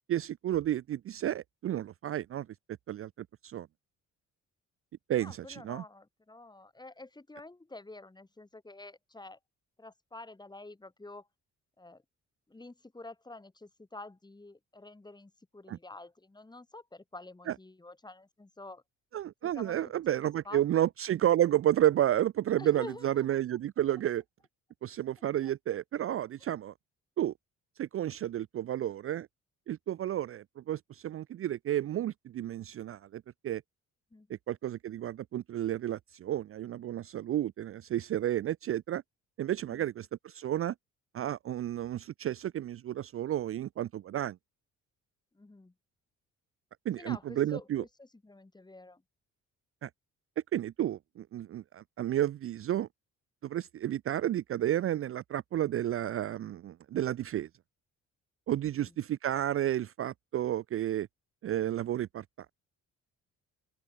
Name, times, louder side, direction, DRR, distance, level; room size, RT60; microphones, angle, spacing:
voice 1, 0.1-2.5 2.9-3.7 5.1-5.8 15.7-15.8 17.5-17.6 19.1-24.2 24.8-26.7 27.2-27.3 27.8-29.3 29.7-33.6 34.3-39.0 39.4-40.7 41.1-44.4 46.9-47.8 49.8-49.9 50.5-52.9 53.4-57.5 58.5-61.1 61.4-62.2, right 12 dB, 45° right, 0.5 m, -31 dB
voice 2, 5.2-9.4 9.8-11.3 11.8-12.0 12.5-18.8 19.4-20.6 22.6-23.4 25.4-25.5 26.4-26.5 34.1-34.3 39.7-39.9 45.3-45.7 47.0-49.0 58.8-58.9, left 2 dB, 15° left, 2.3 m, -48 dB
open air
cardioid pair, 90°, 30 cm